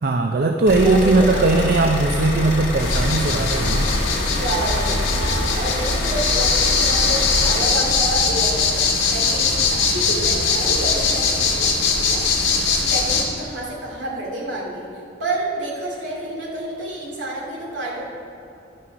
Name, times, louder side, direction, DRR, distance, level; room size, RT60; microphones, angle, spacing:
voice 1, 0.0-3.9, right 3 dB, 50° right, 4 dB, 0.5 m, -19 dB
sound 1, 0.7-7.6, left 1 dB, 65° left, 1.9 m, -25 dB
voice 2, 0.8-1.5 4.4-12.5 12.9-18.0, right 1 dB, 70° right, -3 dB, 2.3 m, -29 dB
sound 2, 2.8-13.2, left 4 dB, 90° left, 1.6 m, -21 dB
11.5 x 6.1 x 5.9 m, 2.8 s
head